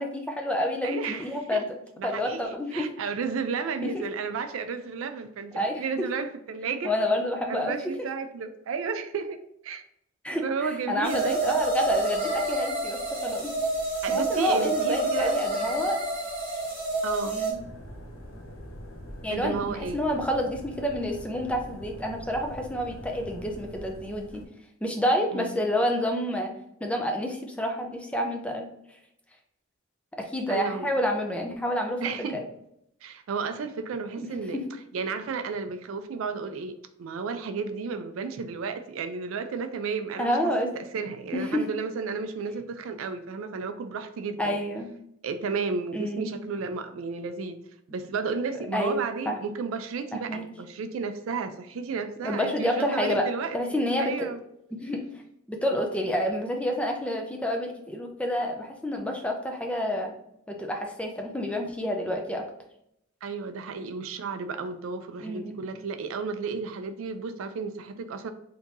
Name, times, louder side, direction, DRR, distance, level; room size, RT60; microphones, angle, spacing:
voice 1, 0.0-1.7 2.0-2.9 3.8-3.9 5.6-6.1 6.8-7.7 10.2-13.5 14.1-16.0 17.3-17.6 19.2-24.4 24.8-26.5 26.8-28.7 30.2-32.4 34.2-34.3 34.5-34.7 40.2-40.7 41.3-41.7 44.4-44.9 45.9-46.4 48.7-49.4 50.3-50.4 52.2-53.3 53.5-54.3 54.7-55.1 55.5-60.1 60.5-62.4 65.2-65.6, equal, 5° left, 2 dB, 0.4 m, -29 dB
voice 2, 0.8-1.6 2.0-6.9 7.5-9.8 10.4-11.7 14.0-15.4 17.0-17.4 19.3-20.0 25.3-25.6 30.5-30.9 32.0-32.4 33.0-34.6 34.9-44.6 45.2-47.6 47.9-54.4 63.2-68.3, right 5 dB, 80° right, 9 dB, 0.4 m, -33 dB
sound 1, 11.0-17.5, right 2 dB, 30° right, 1.2 m, -28 dB
sound 2, 17.5-24.4, equal, 75° left, 0.7 m, -43 dB
3.6 x 2.8 x 2.6 m, 0.75 s
head